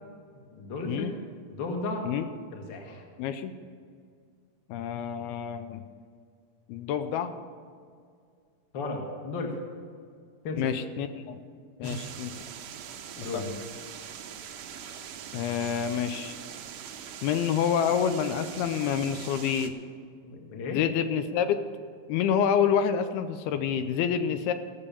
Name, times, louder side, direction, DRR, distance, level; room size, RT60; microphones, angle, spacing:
voice 1, 0.5-1.2 1.5-2.1 2.5-3.0 8.7-9.6 10.4-10.7 11.8-12.0 13.2-13.5 20.2-20.8, left 2 dB, 45° left, 1 dB, 1.5 m, -34 dB
voice 2, 3.2-3.5 4.7-5.8 6.7-7.3 10.6-11.4 11.8-12.3 13.3-13.6 15.3-16.3 17.2-19.7 20.7-21.6 22.1-24.5, left 8 dB, 80° left, 9 dB, 2.5 m, -28 dB
sound 1, 11.8-19.7, right 8 dB, 75° right, 2.0 m, -42 dB
15.5 x 7.2 x 6.8 m, 2.1 s
omnidirectional pair, 4.6 m